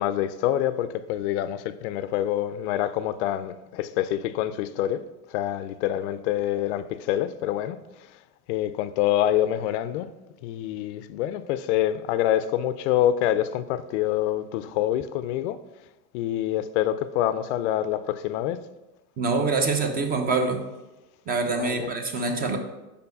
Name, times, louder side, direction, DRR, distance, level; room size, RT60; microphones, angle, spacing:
voice 1, 0.0-5.0 5.3-7.8 8.5-10.1 10.4-15.6 16.1-18.6 21.5-21.9, left 12 dB, 50° left, 0.5 m, -26 dB
voice 2, 19.2-20.6 21.3-22.6, right 3 dB, 20° right, 0.7 m, -25 dB
5.2 x 4.5 x 5.4 m
supercardioid pair, 140°, 45 cm